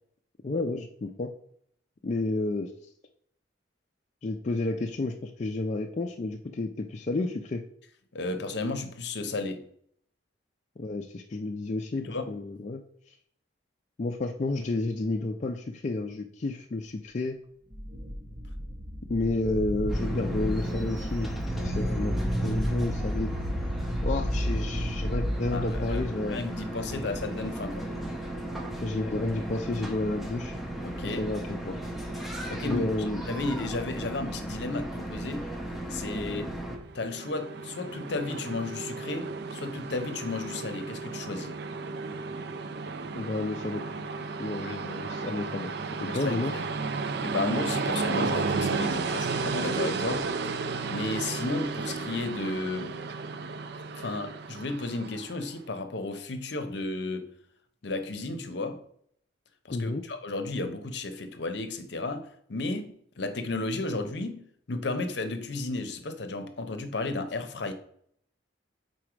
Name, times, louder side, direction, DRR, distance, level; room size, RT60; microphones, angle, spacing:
voice 1, 0.4-1.3 2.0-2.7 4.2-7.6 10.8-12.8 13.1-13.2 14.0-17.4 19.1-21.3 21.6-22.2 22.4-23.3 24.0-26.5 26.8-27.1 28.8-30.6 31.0-31.8 32.6-33.2 36.1-36.5 43.1-43.8 44.4-45.7 46.0-46.5 59.7-60.0, left 2 dB, 40° left, 0.4 m, -31 dB
voice 2, 8.1-9.6 12.0-12.3 25.5-27.9 30.8-31.2 32.5-32.9 33.3-35.4 35.9-36.5 36.9-41.6 44.6-44.8 46.1-46.4 47.1-50.3 50.9-53.0 54.0-57.3 57.8-58.8 59.6-67.7, left 2 dB, 60° left, 0.7 m, -33 dB
sound 1, 17.7-26.0, equal, 35° right, 0.8 m, -31 dB
sound 2, 19.9-36.8, right 1 dB, ahead, 0.7 m, -36 dB
Train, 36.8-55.4, right 4 dB, 60° right, 0.4 m, -33 dB
4.6 x 4.2 x 4.9 m
head